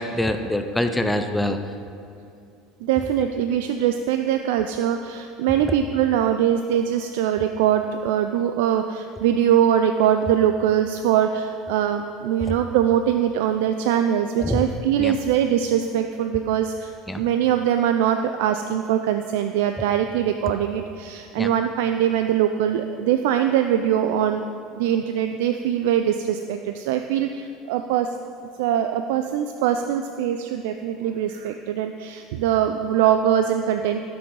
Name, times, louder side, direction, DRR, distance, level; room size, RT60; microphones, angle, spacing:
voice 1, 0.0-1.6 3.2-3.3 5.7-5.8 14.4-14.6 15.0-15.1 17.1-17.2 21.4-21.5, left 1 dB, 5° left, 7 dB, 0.5 m, -25 dB
voice 2, 2.8-24.4 24.8-28.1 28.6-34.0, right 10 dB, 85° right, 7 dB, 0.4 m, -22 dB
14.0 x 6.1 x 4.7 m, 2.5 s
supercardioid pair, 130°, 0 cm